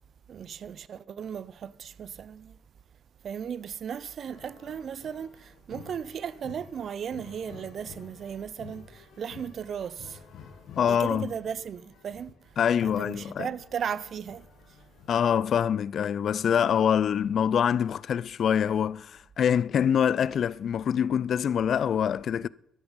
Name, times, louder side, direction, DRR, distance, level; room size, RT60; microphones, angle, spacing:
voice 1, 0.3-2.5 3.2-10.2 10.9-12.3 12.8-14.4, right 8 dB, 60° right, 0.6 m, -36 dB
sound 1, 3.9-15.3, left 7 dB, 80° left, 1.8 m, -51 dB
voice 2, 10.8-11.3 12.6-13.5 15.1-22.5, left 8 dB, 60° left, 0.4 m, -25 dB
13.0 x 12.5 x 5.3 m
cardioid pair, 90°, 0 cm